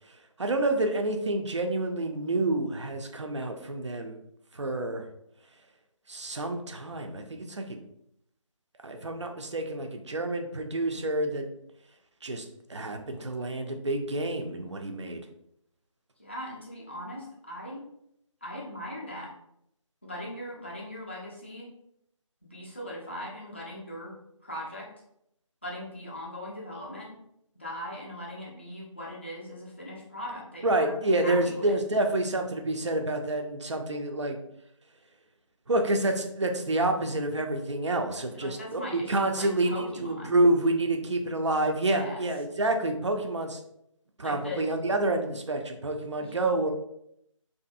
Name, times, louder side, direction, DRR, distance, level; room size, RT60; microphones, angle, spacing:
voice 1, 0.4-4.2 4.5-5.0 6.1-7.8 8.8-11.5 12.2-12.4 12.7-15.2 30.6-34.4 35.7-43.6 44.2-46.7, right 2 dB, 60° right, 5 dB, 0.5 m, -28 dB
voice 2, 16.2-17.8 18.4-19.3 20.0-21.7 22.4-24.1 24.4-24.9 25.6-27.1 27.5-31.7 38.3-40.3 41.8-42.2 44.2-44.7 46.2-46.5, left 1 dB, 20° left, -4 dB, 0.4 m, -39 dB
2.6 x 2.4 x 2.4 m, 0.76 s
figure-of-eight pair, 160°, 17 cm